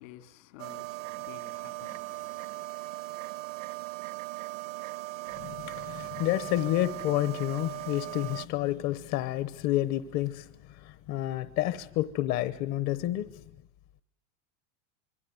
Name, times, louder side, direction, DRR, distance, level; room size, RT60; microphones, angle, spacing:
voice 1, 0.0-2.4, left 13 dB, 70° left, 2.7 m, -51 dB
sound 1, 0.6-8.5, right 20 dB, 80° right, 1.6 m, -39 dB
voice 2, 5.4-13.4, left 14 dB, 45° left, 1.0 m, -30 dB
26.0 x 23.5 x 9.5 m
supercardioid pair, 155°, 39 cm